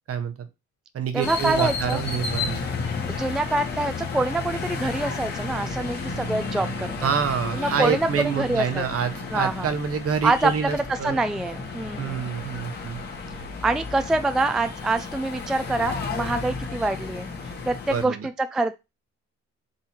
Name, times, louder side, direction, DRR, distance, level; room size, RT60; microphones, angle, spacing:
voice 1, 0.1-0.5 0.9-2.6 7.0-11.2 12.0-13.0 17.9-18.3, right 7 dB, 50° right, 9 dB, 0.9 m, -27 dB
voice 2, 1.1-2.0 3.1-7.1 7.5-8.8 9.3-9.7 10.2-12.2 13.6-18.7, right 2 dB, ahead, 10 dB, 0.3 m, -26 dB
sound 1, 1.2-18.0, left 4 dB, 35° left, 1.4 m, -32 dB
sound 2, 4.8-17.6, right 8 dB, 70° right, 1.1 m, -45 dB
3.7 x 2.7 x 4.4 m, 0.24 s
cardioid pair, 90°, 30 cm